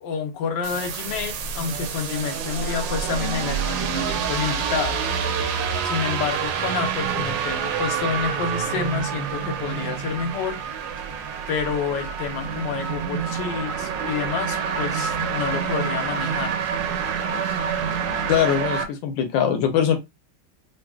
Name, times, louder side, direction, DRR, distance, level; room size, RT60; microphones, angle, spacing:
voice 1, 0.0-5.0 5.8-10.6 11.0-11.1 11.5-16.5, left 6 dB, 70° left, 1.3 m, -29 dB
sound 1, 0.6-18.8, right 7 dB, 75° right, 1.3 m, -27 dB
voice 2, 18.3-20.0, left 9 dB, 90° left, 1.4 m, -21 dB
3.9 x 2.4 x 2.3 m
omnidirectional pair, 2.0 m